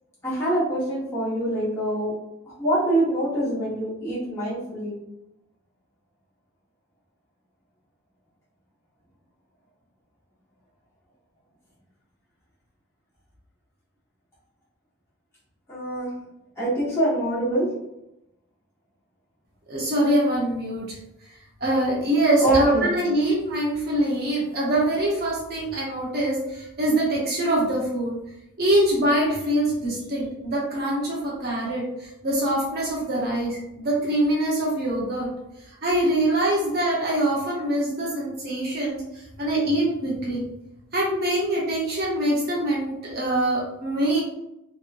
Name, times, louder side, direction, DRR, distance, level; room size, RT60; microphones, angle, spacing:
voice 1, 0.2-2.1 2.5-4.9 15.7-16.1 16.6-17.7 22.4-22.9, right 1 dB, 10° left, -10 dB, 1.3 m, -24 dB
voice 2, 19.7-21.0 21.6-28.2 28.6-35.3 35.7-40.5 40.9-44.2, right 1 dB, 45° right, -4 dB, 0.8 m, -24 dB
3.0 x 2.9 x 2.5 m, 0.87 s
head